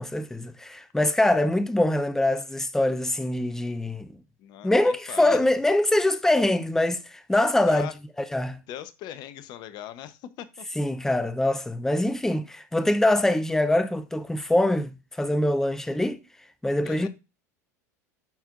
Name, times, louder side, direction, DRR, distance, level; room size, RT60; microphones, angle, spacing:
voice 1, 0.0-4.1 4.6-7.9 8.3-8.6 10.8-16.2 16.6-17.1, left 1 dB, 5° left, 0.6 m, -24 dB
voice 2, 4.4-5.4 7.7-7.9 8.7-10.6 16.8-17.1, left 12 dB, 55° left, 0.9 m, -40 dB
11.5 x 4.5 x 2.5 m
hypercardioid pair, 90°, 9 cm